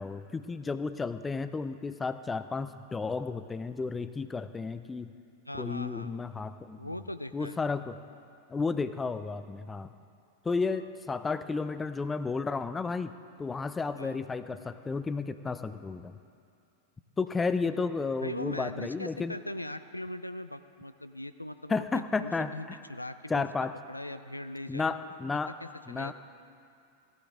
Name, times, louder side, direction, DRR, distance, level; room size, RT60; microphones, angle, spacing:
voice 1, 0.0-5.1 5.6-6.8 7.3-8.0 8.5-9.9 10.4-13.1 13.4-16.1 17.2-19.4 21.7-22.8 23.3-23.7 24.7-25.5 25.9-26.1, left 4 dB, 15° left, 12 dB, 0.5 m, -32 dB
voice 2, 5.4-6.1 6.8-7.6 10.7-10.9 13.9-14.2 18.2-25.1 25.5-26.1, left 1 dB, 85° left, 12 dB, 0.4 m, -40 dB
16.5 x 13.0 x 3.7 m, 2.5 s
figure-of-eight pair, 90°, 0 cm